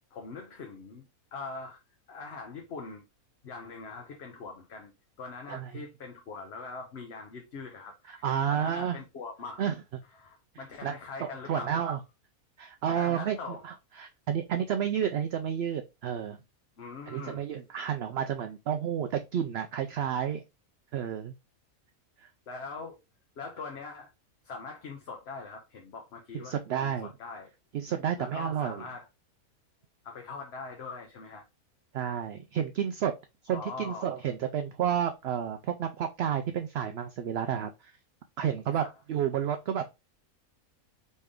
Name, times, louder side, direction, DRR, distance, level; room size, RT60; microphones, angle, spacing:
voice 1, 0.1-1.0 1.3-1.8 2.1-3.0 3.4-4.9 5.2-9.7 10.1-11.9 12.9-13.7 16.8-17.5 22.5-23.0 23.4-24.1 24.4-26.6 26.8-27.5 28.2-29.1 30.0-31.4 33.5-34.2 38.7-38.9, left 4 dB, 50° left, 1.0 m, -42 dB
voice 2, 5.5-5.8 8.1-9.0 9.6-9.8 10.8-12.0 12.6-16.4 17.1-20.4 20.9-21.3 22.2-22.3 26.3-27.1 27.7-28.8 31.9-33.1 33.4-37.7 38.4-39.9, right 9 dB, 70° right, 0.6 m, -31 dB
4.2 x 3.4 x 3.5 m
omnidirectional pair, 1.5 m